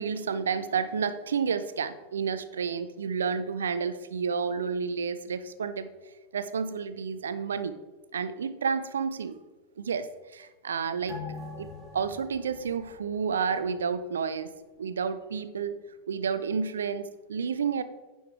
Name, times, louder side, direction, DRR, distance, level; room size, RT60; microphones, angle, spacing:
voice 1, 0.0-5.9 6.3-7.7 8.1-9.4 9.8-14.5 14.8-15.8 16.1-17.8, right 6 dB, 65° right, 13 dB, 0.6 m, -30 dB
sound 1, 11.1-14.0 14.3-14.4, left 4 dB, ahead, 3.2 m, -43 dB
9.7 x 5.4 x 4.6 m, 1.2 s
figure-of-eight pair, 90°, 0 cm